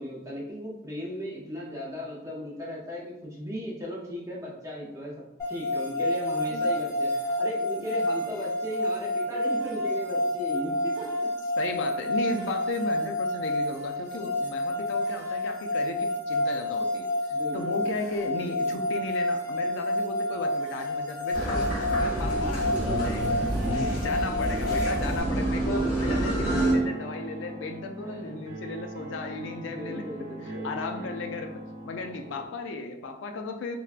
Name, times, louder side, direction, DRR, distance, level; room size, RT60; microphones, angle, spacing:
voice 1, 0.0-5.1 5.5-11.1 14.4-14.8 17.3-17.9 22.4-23.3 23.6-24.2 28.0-28.5 29.6-30.7 32.2-32.4, equal, 15° right, -3 dB, 0.6 m, -37 dB
sound 1, 5.4-25.2, left 1 dB, 15° left, 0.9 m, -29 dB
voice 2, 11.6-23.3 23.7-30.1 30.5-33.8, left 3 dB, 70° left, 5 dB, 0.3 m, -35 dB
sound 2, 21.3-26.7, right 1 dB, 45° left, 1.3 m, -28 dB
sound 3, 24.4-32.5, right 1 dB, 85° right, 0.7 m, -40 dB
3.4 x 2.2 x 2.4 m, 0.88 s
head